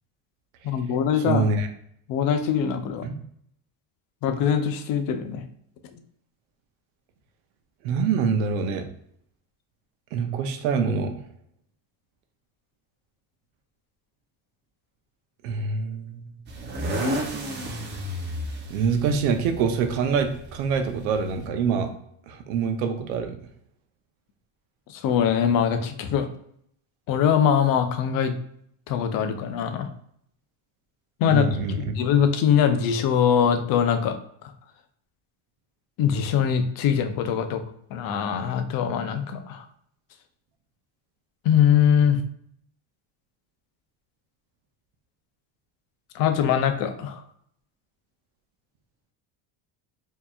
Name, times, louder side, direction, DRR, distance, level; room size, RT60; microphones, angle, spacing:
voice 1, 0.6-1.4 2.1-3.1 4.2-5.4 24.9-26.3 27.1-28.3 28.9-29.9 31.2-31.4 32.0-34.1 36.0-37.6 37.9-39.6 41.4-42.2 46.1-47.2, left 8 dB, 55° left, 8 dB, 0.6 m, -22 dB
voice 2, 1.3-1.7 3.0-3.1 7.8-8.9 10.1-11.1 15.4-16.4 18.7-21.9 22.3-23.4 31.3-31.9, right 5 dB, 90° right, 6 dB, 0.7 m, -25 dB
sound 1, 16.5-21.5, equal, 25° right, 0.6 m, -32 dB
4.5 x 2.9 x 2.3 m, 0.68 s
cardioid pair, 130°, 41 cm